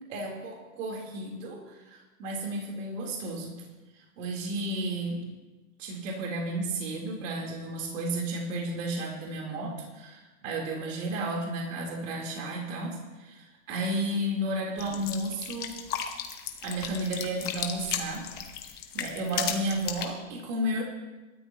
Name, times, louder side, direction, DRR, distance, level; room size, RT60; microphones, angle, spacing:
voice 1, 0.1-3.6 4.0-5.2 5.8-15.8 16.6-18.3 18.9-20.8, right 1 dB, 55° right, -1 dB, 3.7 m, -33 dB
sound 1, 14.8-20.1, left 9 dB, 20° left, 1.0 m, -35 dB
26.5 x 13.0 x 3.0 m, 1.1 s
supercardioid pair, 170°, 44 cm